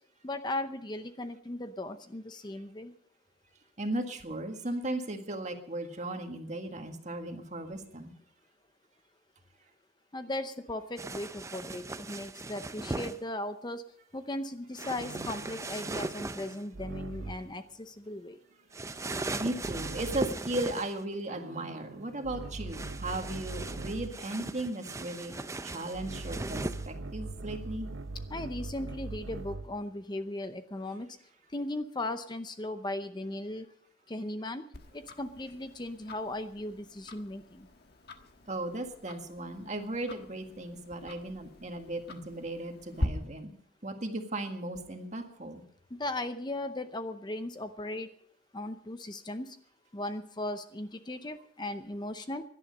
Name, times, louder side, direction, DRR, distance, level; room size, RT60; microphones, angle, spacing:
voice 1, 0.2-2.9 10.1-13.8 14.1-18.4 28.3-31.1 31.5-33.7 34.1-34.6 34.9-37.7 46.0-48.1 48.5-49.5 49.9-52.4, left 1 dB, 25° left, 9 dB, 0.7 m, -37 dB
voice 2, 3.8-8.1 19.4-25.3 25.6-27.9 38.5-43.5 43.8-45.6, right 1 dB, 40° right, 5 dB, 1.8 m, -36 dB
sound 1, 11.0-13.2 14.8-16.6 18.7-21.0 22.7-26.9, right 2 dB, 15° right, 0.5 m, -38 dB
sound 2, 14.8-17.6 19.6-20.4 21.3-24.3 25.9-29.8, right 2 dB, 85° right, 0.8 m, -42 dB
Tick-tock, 34.7-43.1, left 1 dB, 55° left, 1.5 m, -42 dB
17.5 x 11.5 x 5.3 m, 0.63 s
head